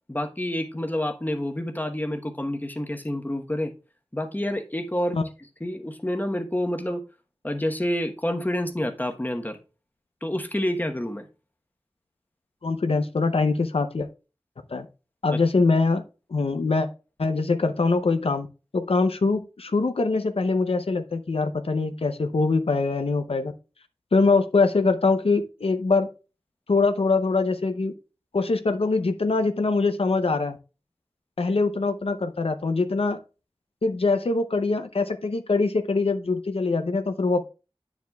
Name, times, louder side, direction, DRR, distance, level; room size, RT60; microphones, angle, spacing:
voice 1, 0.1-3.7 4.1-5.2 5.6-7.0 7.4-9.6 10.2-11.3 15.3-15.4, left 1 dB, 20° left, 5 dB, 1.0 m, -28 dB
voice 2, 12.6-14.1 14.7-14.9 15.2-16.0 16.3-16.9 17.2-18.5 18.7-23.5 24.1-26.1 26.7-27.9 28.3-30.6 31.4-33.2 33.8-37.4, left 3 dB, 80° left, 8 dB, 0.6 m, -23 dB
9.3 x 7.1 x 2.3 m, 0.32 s
wide cardioid pair, 55°, 10 cm